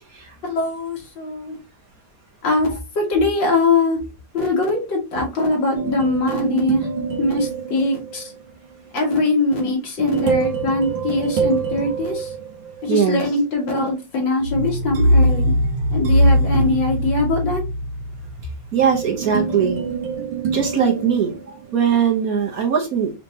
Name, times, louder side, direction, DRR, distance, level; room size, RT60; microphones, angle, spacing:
voice 1, 0.4-1.6 2.4-4.0 4.3-6.9 7.2-8.2 8.9-12.3 12.8-15.5 15.9-17.6, left 2 dB, 85° left, -1 dB, 2.5 m, -21 dB
sound 1, 5.7-8.4 10.0-13.0 14.4-21.7, right 1 dB, 85° right, 1.7 m, -23 dB
voice 2, 12.9-13.2 18.7-19.8 20.5-21.3 21.7-23.1, right 7 dB, 55° right, 1 dB, 1.4 m, -20 dB
5.5 x 3.3 x 2.8 m, 0.27 s
omnidirectional pair, 2.0 m